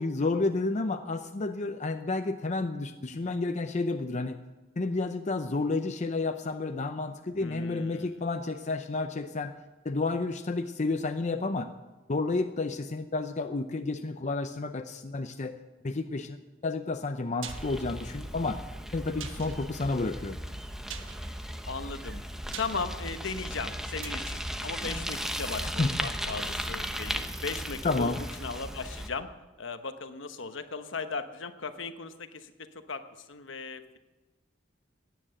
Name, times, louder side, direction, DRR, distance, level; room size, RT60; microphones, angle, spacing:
voice 1, 0.0-4.4 4.8-9.5 9.8-11.7 12.1-15.6 15.8-16.4 16.6-18.6 18.9-20.4 25.8-25.9 27.8-28.2, left 3 dB, 35° left, 7 dB, 0.6 m, -30 dB
voice 2, 7.4-8.1 21.7-22.2 22.6-29.3 29.6-33.0 33.3-34.0, left 4 dB, 65° left, 9 dB, 1.1 m, -37 dB
sound 1, 17.4-25.9 26.2-26.3, right 8 dB, 75° right, 1.2 m, -48 dB
Bicycle, 17.5-29.1, equal, ahead, 0.9 m, -36 dB
16.5 x 10.0 x 7.7 m, 1.2 s
head